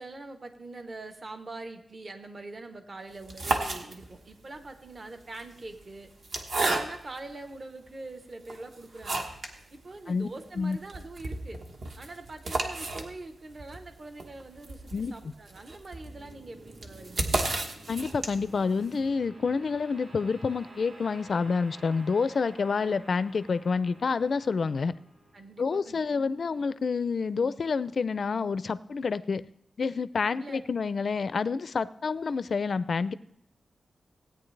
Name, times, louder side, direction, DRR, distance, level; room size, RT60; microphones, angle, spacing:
voice 1, 0.0-6.1 6.5-9.3 9.7-11.6 12.0-17.3 25.3-26.3 29.9-30.1 30.4-30.6, right 2 dB, 35° right, 7 dB, 0.9 m, -43 dB
sound 1, 3.1-4.3 5.2-7.3 7.9-8.0 8.4-9.6 9.9-10.0 10.3-10.4 10.7-18.6, right 2 dB, 55° right, 1.2 m, -33 dB
voice 2, 14.9-15.3 17.9-24.9 25.6-29.4 29.8-33.1, left 5 dB, 50° left, 15 dB, 0.4 m, -28 dB
sound 2, 16.0-27.2, right 1 dB, 80° right, 3.4 m, -52 dB
16.5 x 9.2 x 3.3 m, 0.69 s
wide cardioid pair, 165°, 0 cm